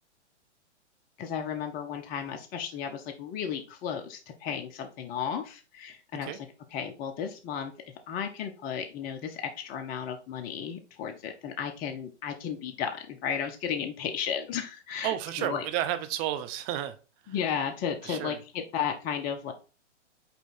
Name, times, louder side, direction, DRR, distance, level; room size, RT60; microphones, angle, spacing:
voice 1, 1.2-6.4 6.7-7.7 8.1-15.6 17.3-19.5, left 8 dB, 25° left, 0.8 m, -34 dB
voice 2, 15.0-17.0 17.2-17.3 18.0-18.4, right 12 dB, 30° right, 0.7 m, -32 dB
5.4 x 4.4 x 4.3 m
hypercardioid pair, 120°, 35 cm